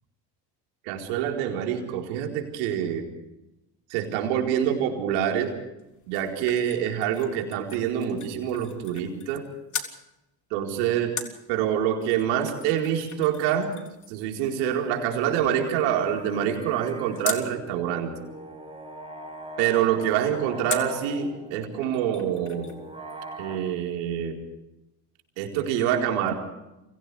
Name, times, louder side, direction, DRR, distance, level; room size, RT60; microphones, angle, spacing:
voice 1, 0.8-3.1 3.9-5.5 6.1-9.4 10.5-11.2 11.5-13.8 14.1-18.1 19.6-22.7 23.4-24.4 25.4-26.3, right 9 dB, 75° right, 2 dB, 4.6 m, -26 dB
sound 1, 5.8-9.4 9.7-10.0 11.2-17.5 20.7-21.0 21.5-21.6 21.8-22.8 23.1-23.2, left 6 dB, 35° left, 3.5 m, -39 dB
sound 2, 15.3-23.6, right 2 dB, 10° right, 7.2 m, -42 dB
30.0 x 25.0 x 3.5 m, 0.92 s
hypercardioid pair, 65°, 50 cm